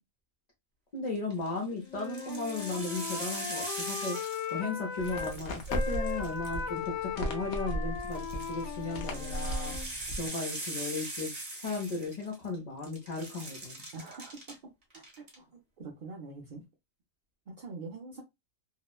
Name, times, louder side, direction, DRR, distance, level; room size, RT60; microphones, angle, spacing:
voice 1, 0.9-4.2 4.5-11.3 11.6-13.8, left 3 dB, 45° left, 0.6 m, -36 dB
sound 1, 1.2-1.5 2.0-4.7 5.0-6.9 8.0-12.6 12.8-14.5 14.9-15.4, right 1 dB, 30° right, 0.9 m, -41 dB
Wind instrument woodwind instrument, 1.9-5.4 5.7-9.9, left 7 dB, 90° left, 1.0 m, -38 dB
sound 2, 5.0-10.3, equal, 65° left, 0.9 m, -36 dB
voice 2, 13.9-16.6 17.5-18.2, right 3 dB, 55° right, 0.5 m, -45 dB
2.9 x 2.0 x 2.3 m
omnidirectional pair, 1.4 m